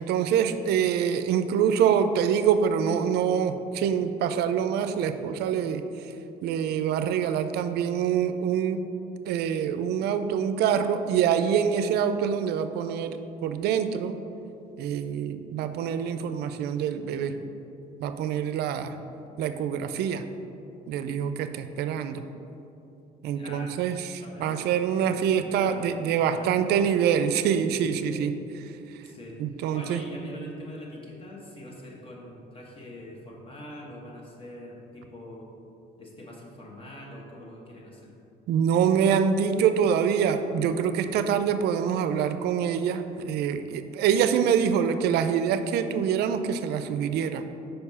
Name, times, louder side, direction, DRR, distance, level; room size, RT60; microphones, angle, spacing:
voice 1, 0.0-5.8 6.4-8.8 9.2-14.2 14.8-17.3 18.0-19.0 19.4-20.2 20.9-22.2 23.2-28.7 29.4-30.0 38.5-47.4, right 8 dB, 75° right, 10 dB, 0.4 m, -25 dB
voice 2, 23.3-23.8 24.2-27.0 29.0-29.4 29.7-35.5 36.0-38.1, left 1 dB, 30° left, -2 dB, 1.4 m, -43 dB
5.2 x 4.6 x 5.5 m, 2.8 s
cardioid pair, 110°, 17 cm